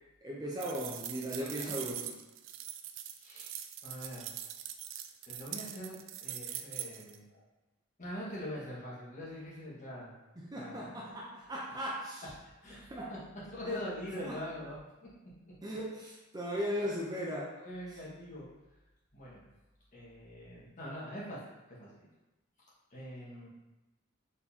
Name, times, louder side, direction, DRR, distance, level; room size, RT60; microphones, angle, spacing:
voice 1, 0.2-2.1 10.4-12.2 12.9-13.1 13.6-13.8 14.2-14.4 15.6-17.6, equal, 20° right, -4 dB, 0.6 m, -37 dB
sound 1, 0.6-7.2, right 11 dB, 70° right, 0.3 m, -42 dB
voice 2, 1.3-1.8 3.2-3.5 3.8-4.4 5.2-7.4 8.0-10.1 10.5-10.9 11.7-11.8 12.2-12.3 12.6-13.2 13.5-14.7 17.6-18.5 19.1-19.4 19.9-21.4 21.7-21.9 22.9-23.5, equal, 40° left, -7 dB, 1.5 m, -43 dB
4.4 x 4.0 x 2.8 m, 1.0 s
head